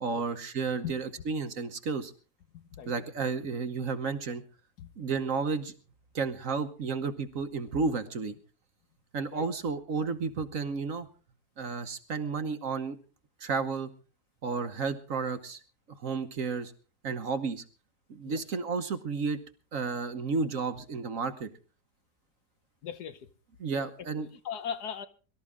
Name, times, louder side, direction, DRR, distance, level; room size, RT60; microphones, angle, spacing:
voice 1, 0.0-2.1 2.9-4.4 5.0-5.7 6.1-8.4 9.1-11.1 11.6-13.0 13.4-13.9 14.4-15.6 16.0-16.7 17.0-17.6 18.1-19.4 19.7-21.5 23.6-24.3, right 4 dB, 55° right, 1.3 m, -32 dB
voice 2, 2.5-2.9 4.8-4.9 9.3-9.4 18.2-18.4 22.8-23.3 23.8-23.9 24.2-25.1, left 8 dB, 65° left, 1.5 m, -39 dB
23.0 x 13.0 x 3.6 m
omnidirectional pair, 1.9 m